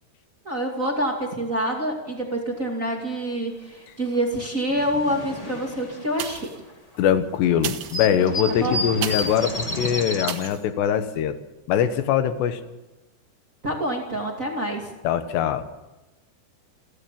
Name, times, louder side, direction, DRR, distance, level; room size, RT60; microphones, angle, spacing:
voice 1, 0.4-6.5 8.5-8.8 13.6-14.9, right 1 dB, 25° right, 0 dB, 2.2 m, -27 dB
sound 1, 4.1-4.2 4.4-7.0 7.3-7.4 7.7-10.5, left 1 dB, 50° left, 0.4 m, -31 dB
sound 2, 6.1-6.7 7.5-9.5 10.2-10.6 11.2-11.3, right 11 dB, 85° right, 3.3 m, -34 dB
voice 2, 7.0-11.4 11.7-12.6 15.0-15.7, left 9 dB, 90° left, 10 dB, 3.4 m, -22 dB
29.5 x 12.5 x 7.5 m, 1.0 s
omnidirectional pair, 4.8 m